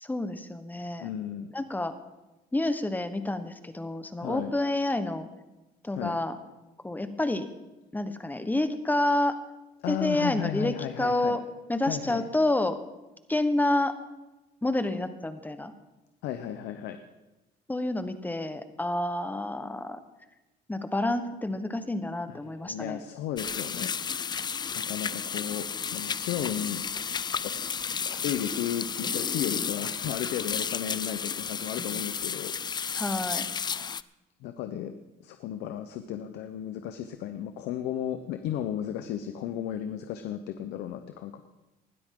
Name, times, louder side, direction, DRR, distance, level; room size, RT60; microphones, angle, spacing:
voice 1, 0.0-1.1 1.5-1.9 2.5-5.3 5.8-6.4 6.8-7.5 7.9-9.4 9.9-11.4 11.7-12.8 13.3-13.9 14.6-15.7 17.7-20.0 20.7-23.0 32.9-33.5, left 1 dB, 10° left, 10 dB, 1.1 m, -28 dB
voice 2, 1.0-1.5 4.2-4.5 5.9-6.1 9.8-11.4 11.8-12.2 16.2-17.0 22.3-23.9 24.7-26.8 27.4-27.5 28.0-32.5 32.9-33.0 34.4-34.9 35.2-41.5, left 10 dB, 85° left, 9 dB, 0.9 m, -34 dB
sound 1, 23.4-34.0, left 6 dB, 25° left, 0.4 m, -32 dB
20.0 x 12.5 x 3.8 m, 1.0 s
cardioid pair, 110°, 17 cm